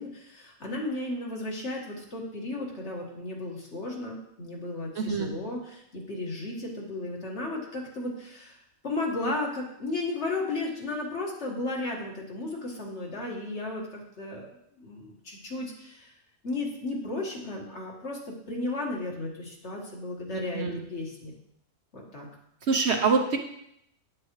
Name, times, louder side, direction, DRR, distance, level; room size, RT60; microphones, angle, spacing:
voice 1, 0.0-8.6 8.8-13.8 14.2-14.5 14.7-16.1 16.4-21.3 21.9-22.3, left 2 dB, 55° left, -2 dB, 1.9 m, -34 dB
voice 2, 5.0-5.3 20.3-20.8 22.7-23.4, right 5 dB, 60° right, 4 dB, 1.0 m, -25 dB
8.7 x 8.6 x 3.1 m, 0.75 s
omnidirectional pair, 1.4 m